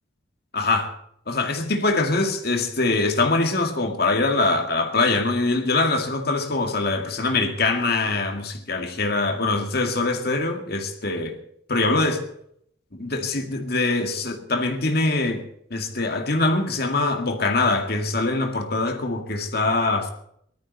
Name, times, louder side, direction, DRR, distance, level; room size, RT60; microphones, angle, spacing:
voice 1, 0.5-0.9 1.3-11.4 11.7-12.2 12.9-15.4 15.7-20.1, left 3 dB, 55° left, 2.2 m, -23 dB
19.5 x 13.5 x 4.2 m
head